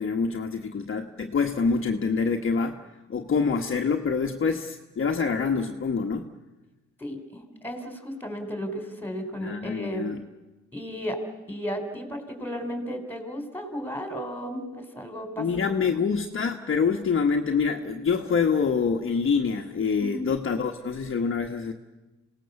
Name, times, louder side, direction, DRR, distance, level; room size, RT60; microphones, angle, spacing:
voice 1, 0.0-2.8 3.1-6.3 9.4-10.2 15.4-21.7, left 5 dB, 45° left, 3 dB, 1.4 m, -26 dB
voice 2, 7.0-10.2 10.7-11.2 11.5-15.5 15.9-16.0 20.0-20.3, equal, 5° left, 5 dB, 4.4 m, -34 dB
27.0 x 18.5 x 7.1 m, 1.1 s
cardioid pair, 90°, 30 cm